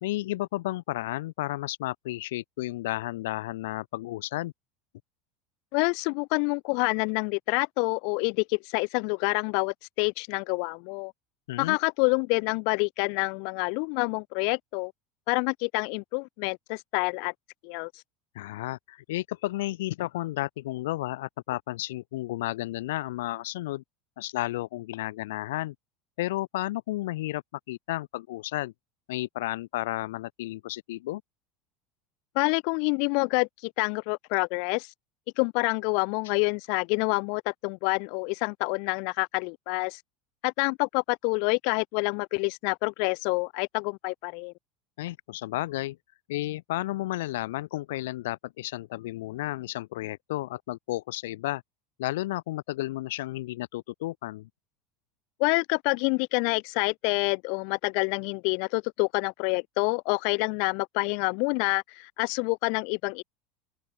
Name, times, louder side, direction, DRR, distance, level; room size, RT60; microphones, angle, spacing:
voice 1, 0.0-4.5 11.5-11.8 18.3-23.8 24.2-25.7 26.2-28.7 29.1-31.2 45.0-46.0 46.3-51.6 52.0-54.5, left 17 dB, 85° left, 1.1 m, -32 dB
voice 2, 5.7-11.1 11.6-14.9 15.3-17.3 17.6-17.9 32.3-34.9 35.4-40.0 40.4-44.5 55.4-63.2, left 40 dB or more, 65° left, 0.8 m, -27 dB
open air
supercardioid pair, 115°, 0 cm